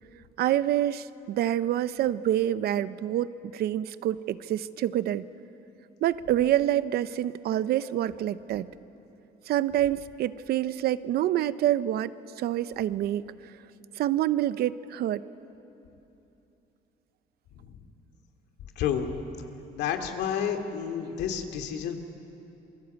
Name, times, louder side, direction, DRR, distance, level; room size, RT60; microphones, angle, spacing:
voice 1, 0.4-5.3 6.0-8.7 9.5-13.2 14.0-15.2, right 12 dB, 70° right, 15 dB, 0.8 m, -27 dB
voice 2, 18.8-19.1 19.7-22.0, left 8 dB, 80° left, 5 dB, 2.5 m, -30 dB
27.5 x 23.0 x 8.3 m, 3.0 s
cardioid pair, 110°, 17 cm